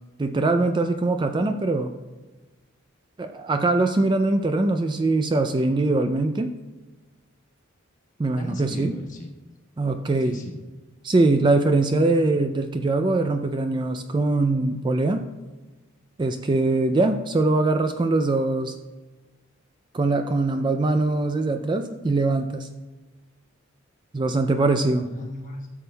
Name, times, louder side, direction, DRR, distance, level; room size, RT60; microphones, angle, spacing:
voice 1, 0.2-1.9 3.2-6.5 8.2-8.9 9.8-10.4 11.0-15.2 16.2-18.7 19.9-22.7 24.1-25.1, right 2 dB, 20° right, 7 dB, 0.3 m, -22 dB
voice 2, 8.4-9.3 10.2-10.6 11.9-12.1 25.0-25.7, left 1 dB, 40° left, 1 dB, 1.1 m, -37 dB
13.0 x 6.8 x 2.2 m, 1.2 s
head